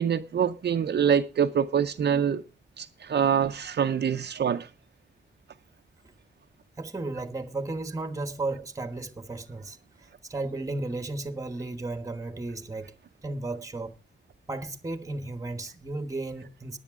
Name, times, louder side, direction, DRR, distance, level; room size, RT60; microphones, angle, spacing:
voice 1, 0.0-2.4 2.8-4.7, right 8 dB, 60° right, 0.6 m, -25 dB
voice 2, 6.8-13.0 13.2-14.0 14.5-16.8, right 2 dB, 15° right, 1.2 m, -34 dB
15.5 x 10.0 x 3.7 m
wide cardioid pair, 160°, 20 cm